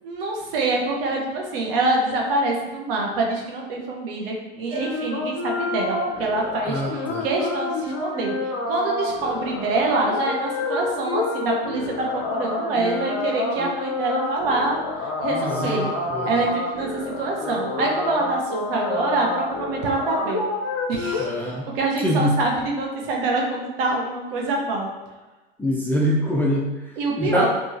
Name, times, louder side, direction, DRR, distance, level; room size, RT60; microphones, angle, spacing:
voice 1, 0.0-8.3 8.7-14.8 15.2-15.9 16.2-20.5 20.9-21.5 21.7-24.9 27.0-27.5, right 2 dB, 70° right, -1 dB, 0.7 m, -25 dB
sound 1, 4.7-21.3, left 3 dB, 45° left, 0.6 m, -28 dB
voice 2, 6.7-7.3 15.3-16.4 21.2-21.7 22.0-22.4 25.6-26.9 27.2-27.5, equal, 5° left, -4 dB, 0.3 m, -24 dB
2.9 x 2.3 x 2.6 m, 1.2 s
hypercardioid pair, 85°, 30 cm